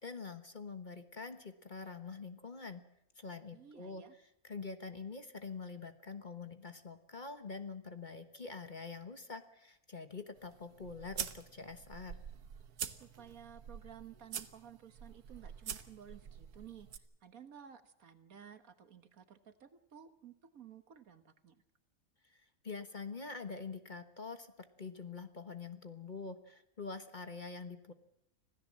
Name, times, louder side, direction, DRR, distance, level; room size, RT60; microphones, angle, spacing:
voice 1, 0.0-2.8 3.2-4.0 4.4-12.2 22.3-27.9, left 4 dB, 35° left, 8 dB, 1.3 m, -45 dB
voice 2, 3.5-4.2 12.9-21.6, right 8 dB, 70° right, 10 dB, 1.8 m, -55 dB
sound 1, 10.3-17.0, right 8 dB, 85° right, 1.6 m, -46 dB
26.0 x 16.5 x 7.5 m, 0.82 s
omnidirectional pair, 1.5 m